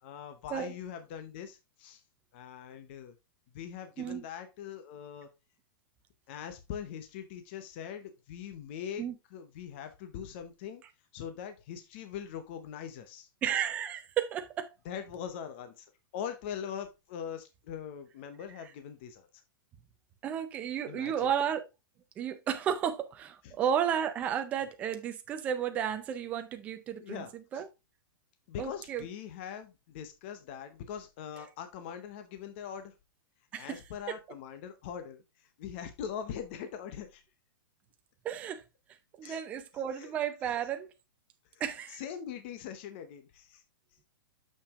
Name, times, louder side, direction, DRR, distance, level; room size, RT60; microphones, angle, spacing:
voice 1, 0.0-2.0 2.3-3.1 3.5-5.3 6.3-9.0 9.3-10.8 11.1-13.3 14.8-15.9 16.1-19.3 20.9-21.3 23.4-23.6 27.0-27.6 28.5-32.9 33.6-35.2 35.6-37.2 39.2-39.4 39.9-40.1 40.4-40.5 41.5-41.6 41.9-43.6, left 8 dB, 30° left, 0.8 m, -42 dB
voice 2, 13.4-14.7 20.2-21.7 22.2-27.2 27.5-27.7 28.6-29.1 33.5-33.8 34.1-34.2 38.2-38.6 39.2-40.9 41.6-42.0, right 9 dB, 10° right, 0.5 m, -33 dB
6.8 x 5.9 x 3.6 m
supercardioid pair, 180°, 12 cm